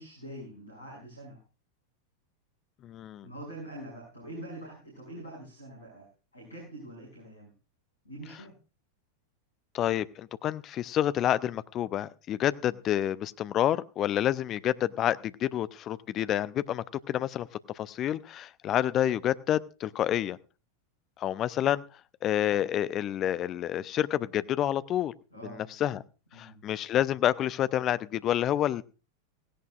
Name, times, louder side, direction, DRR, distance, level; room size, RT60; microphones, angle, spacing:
voice 1, 0.0-1.4 3.2-7.5 8.0-8.6 25.3-25.7 26.3-26.6, right 1 dB, 80° left, 0 dB, 6.2 m, -44 dB
voice 2, 2.8-3.3 9.7-17.5 17.7-20.4 21.2-21.8 22.2-25.1 25.4-26.0 26.3-28.8, left 11 dB, 30° left, 16 dB, 0.6 m, -28 dB
16.5 x 16.5 x 2.4 m, 0.33 s
figure-of-eight pair, 90°, 0 cm